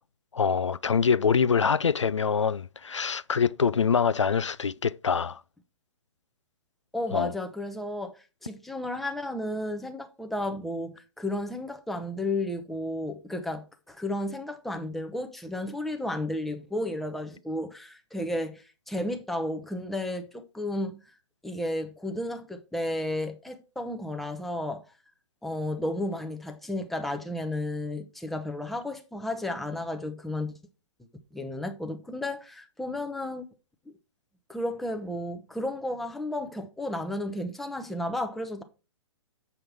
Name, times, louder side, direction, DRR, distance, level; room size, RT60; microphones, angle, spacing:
voice 1, 0.3-5.4 7.1-7.3, left 6 dB, 70° left, 0.4 m, -25 dB
voice 2, 6.9-21.0 21.4-24.9 25.4-30.5 31.3-33.5 33.9-34.0 34.5-38.6, left 1 dB, ahead, 0.7 m, -33 dB
7.7 x 5.6 x 4.6 m
figure-of-eight pair, 120°, 16 cm